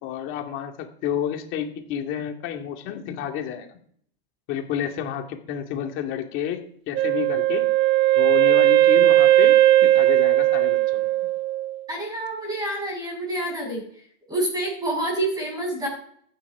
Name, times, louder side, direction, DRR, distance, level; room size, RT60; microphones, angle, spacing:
voice 1, 0.0-3.8 4.5-6.6 6.9-7.6 8.2-9.6 9.8-11.1, left 9 dB, 40° left, 3 dB, 2.3 m, -30 dB
Wind instrument woodwind instrument, 6.9-11.8, right 14 dB, 40° right, 1.1 m, -18 dB
voice 2, 11.9-13.8 14.3-15.9, right 1 dB, 10° right, -1 dB, 7.2 m, -27 dB
15.0 x 9.9 x 4.9 m, 0.62 s
supercardioid pair, 145°, 30 cm